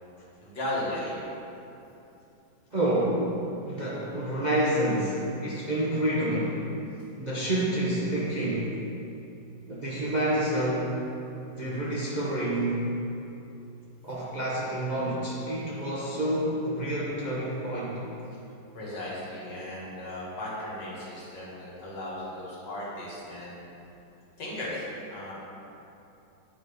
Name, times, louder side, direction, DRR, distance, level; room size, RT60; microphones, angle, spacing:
voice 1, 0.4-1.2 18.7-23.6 24.4-25.3, left 1 dB, 60° left, -6 dB, 2.5 m, -36 dB
voice 2, 2.7-3.4 3.6-6.6 7.2-8.7 9.7-10.9 11.6-12.8 14.0-18.0, right 1 dB, 35° right, -7 dB, 0.8 m, -28 dB
9.3 x 4.9 x 5.5 m, 2.8 s
omnidirectional pair, 2.2 m